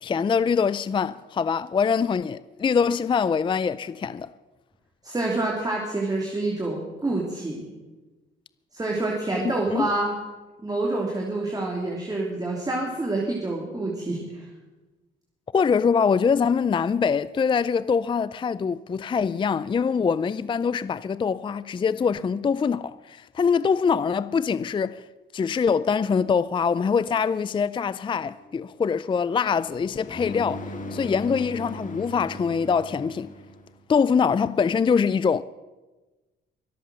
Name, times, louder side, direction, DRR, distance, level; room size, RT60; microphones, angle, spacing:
voice 1, 0.0-4.3 9.7-9.9 15.5-25.0 25.3-33.3 33.9-35.4, left 6 dB, 25° left, 0.4 m, -24 dB
voice 2, 5.0-7.7 8.7-10.1 10.6-14.4, right 2 dB, 20° right, 2.9 m, -27 dB
sound 1, 28.1-33.7, left 1 dB, 40° left, 2.2 m, -39 dB
23.5 x 8.0 x 6.2 m
cardioid pair, 90°, 20 cm